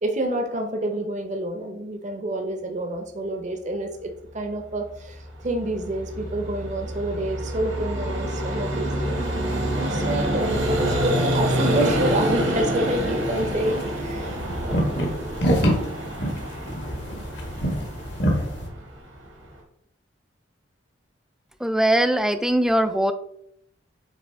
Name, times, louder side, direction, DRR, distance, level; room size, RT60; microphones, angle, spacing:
voice 1, 0.0-9.3 9.8-14.4 14.6-14.8, right 1 dB, 40° right, 4 dB, 0.7 m, -28 dB
Vehicle, 4.9-19.6, right 1 dB, 85° right, 1.8 m, -27 dB
sound 1, 12.9-18.7, equal, 65° left, 1.5 m, -27 dB
voice 2, 21.6-23.1, right 1 dB, 5° right, 10 dB, 0.3 m, -21 dB
8.3 x 3.4 x 3.5 m, 0.72 s
head